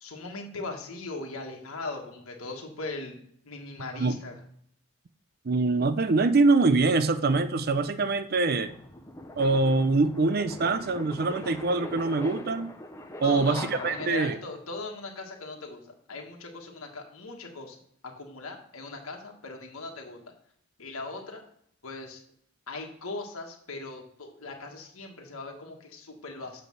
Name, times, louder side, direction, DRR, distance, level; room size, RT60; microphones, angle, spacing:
voice 1, 0.0-3.2 3.4-4.3 13.2-15.8 16.1-17.8 18.0-20.2 20.8-21.4 21.8-22.2 22.7-26.6, left 3 dB, 90° left, 2 dB, 1.5 m, -39 dB
voice 2, 5.5-8.7 9.4-12.7 13.2-14.4, right 3 dB, 45° right, 12 dB, 0.5 m, -24 dB
sound 1, 7.9-14.5, left 1 dB, 15° left, 0.6 m, -42 dB
7.8 x 3.3 x 6.1 m, 0.67 s
head